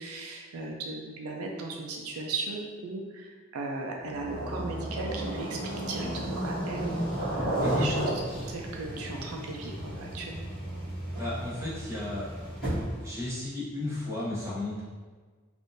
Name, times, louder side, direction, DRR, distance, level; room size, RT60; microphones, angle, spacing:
voice 1, 0.0-7.0 7.3-8.2 8.5-10.5, right 3 dB, 85° right, 0 dB, 0.4 m, -37 dB
sound 1, 4.0-13.1, right 1 dB, 5° left, 1.4 m, -33 dB
voice 2, 11.1-12.3 13.0-14.8, left 2 dB, 15° right, -8 dB, 0.9 m, -33 dB
3.6 x 2.5 x 2.6 m, 1.4 s
head